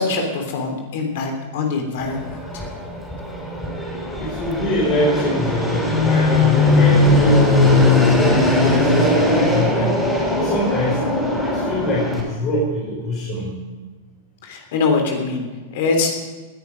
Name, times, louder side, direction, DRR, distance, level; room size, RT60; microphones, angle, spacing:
voice 1, 0.0-2.6 14.4-16.1, left 4 dB, 60° left, 3 dB, 3.3 m, -23 dB
Fixed-wing aircraft airplane, 2.0-12.2, left 2 dB, 5° left, 4.9 m, -19 dB
voice 2, 4.2-9.9 10.3-11.0 11.4-13.5, left 1 dB, 40° left, -5 dB, 5.0 m, -24 dB
19.0 x 10.5 x 5.2 m, 1.3 s
hypercardioid pair, 95°, 0 cm